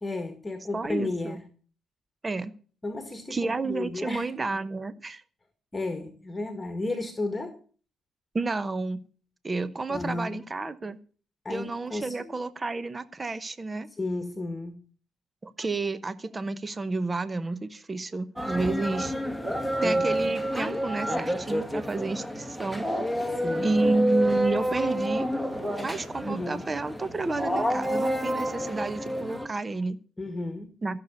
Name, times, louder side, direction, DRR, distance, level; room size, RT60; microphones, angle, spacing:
voice 1, 0.0-1.4 2.8-3.4 3.6-4.3 5.7-7.5 9.9-10.4 11.4-12.3 14.0-14.7 19.8-20.3 23.4-23.7 26.2-26.6 30.2-30.7, left 2 dB, 20° left, 1.8 m, -33 dB
voice 2, 0.7-1.4 2.2-2.5 3.3-5.2 8.3-9.0 9.4-11.0 11.5-13.9 15.4-19.1 19.8-22.9 23.6-25.3 25.8-30.0 30.8-31.0, right 3 dB, 25° right, 0.9 m, -30 dB
sound 1, 18.4-29.5, equal, 5° right, 1.7 m, -28 dB
14.0 x 6.8 x 8.1 m
cardioid pair, 90°, 0 cm